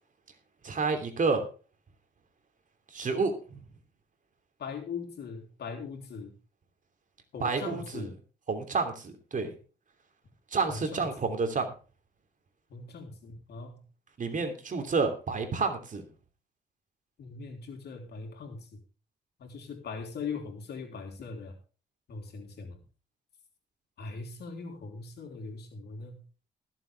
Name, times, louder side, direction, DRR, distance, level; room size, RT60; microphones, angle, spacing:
voice 1, 0.6-1.5 2.9-3.6 7.4-8.1 8.5-9.5 10.5-11.7 14.2-16.0, right 4 dB, 45° right, 6 dB, 3.0 m, -29 dB
voice 2, 4.6-6.3 7.3-8.1 10.7-11.3 12.7-13.8 17.2-18.7 19.4-21.6 22.1-22.8 24.0-26.2, left 4 dB, 65° left, 3 dB, 3.5 m, -40 dB
20.0 x 7.6 x 3.5 m, 0.35 s
cardioid pair, 70°, 18 cm